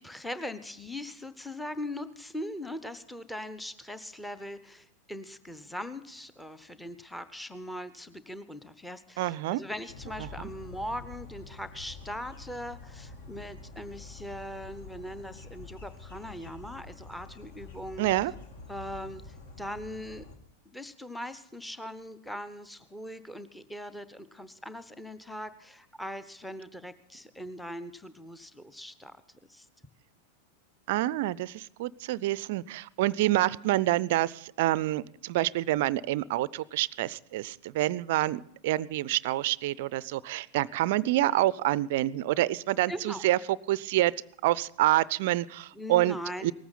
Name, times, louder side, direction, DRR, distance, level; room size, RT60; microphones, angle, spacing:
voice 1, 0.0-18.1 18.7-20.3 20.7-29.1 29.5-29.7 42.9-43.3 45.7-46.5, equal, 5° left, 13 dB, 0.9 m, -40 dB
voice 2, 9.2-9.6 18.0-18.3 30.9-43.4 43.7-44.1 44.4-46.2 46.4-46.5, right 16 dB, 50° right, 22 dB, 0.4 m, -27 dB
sound 1, 9.9-20.4, left 3 dB, 55° left, 2.1 m, -47 dB
19.0 x 14.5 x 4.1 m, 0.75 s
figure-of-eight pair, 90°, 0 cm